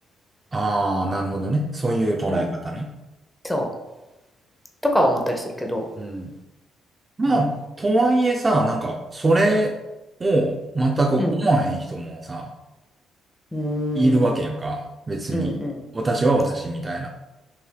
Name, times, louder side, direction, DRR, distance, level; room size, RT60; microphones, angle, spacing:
voice 1, 0.5-2.9 6.0-6.3 7.2-7.5 7.8-9.7 10.2-12.5 13.9-15.6 15.9-17.1, right 2 dB, 25° right, 1 dB, 0.5 m, -22 dB
voice 2, 4.8-5.8 7.3-7.4 11.2-11.3 13.5-14.4 15.3-15.8, equal, 5° left, 2 dB, 0.8 m, -24 dB
5.6 x 3.2 x 2.3 m, 1.0 s
cardioid pair, 90°, 0 cm